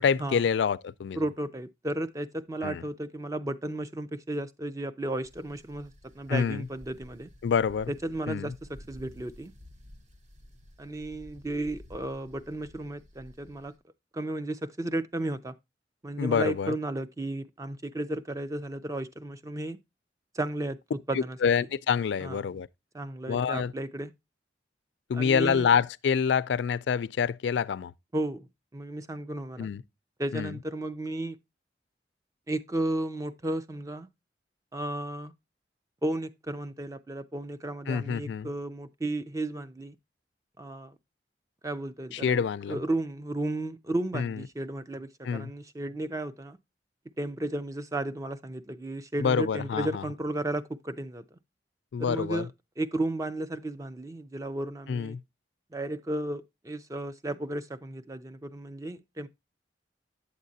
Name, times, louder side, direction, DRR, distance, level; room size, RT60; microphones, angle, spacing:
voice 1, 0.0-1.2 2.6-2.8 6.3-6.7 7.4-7.9 8.3-8.5 16.2-16.7 21.1-22.7 23.3-23.7 25.1-27.9 29.6-29.8 30.3-30.6 37.9-38.5 42.1-42.8 44.1-44.4 45.2-45.5 49.2-50.0 51.9-52.5 54.9-55.2, left 6 dB, 80° left, 0.3 m, -27 dB
voice 2, 1.2-7.3 7.9-9.5 10.8-13.7 14.1-15.5 16.0-19.8 20.3-20.8 21.1-21.5 22.2-22.4 22.9-24.1 25.1-25.7 28.1-29.7 30.2-31.4 32.5-34.1 34.7-35.3 36.0-40.0 40.6-41.0 41.6-42.4 42.7-46.6 47.2-51.4 52.0-52.5 52.8-55.2 55.7-59.3, right 1 dB, 20° right, 0.4 m, -34 dB
sound 1, 5.2-13.8, left 1 dB, 40° right, 1.0 m, -52 dB
8.3 x 7.3 x 2.6 m
head